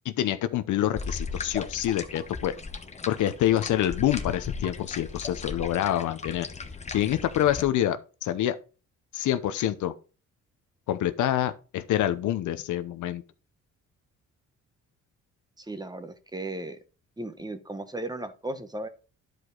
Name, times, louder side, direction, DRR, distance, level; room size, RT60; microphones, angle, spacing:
voice 1, 0.0-2.5 3.1-6.5 6.9-8.6 9.1-9.9 10.9-13.2, left 12 dB, 80° left, 0.8 m, -26 dB
sound 1, 0.9-7.6, left 4 dB, 20° left, 1.0 m, -37 dB
voice 2, 15.6-16.8 17.2-18.9, right 2 dB, 15° right, 1.1 m, -36 dB
11.0 x 4.9 x 3.9 m
cardioid pair, 90°, 30 cm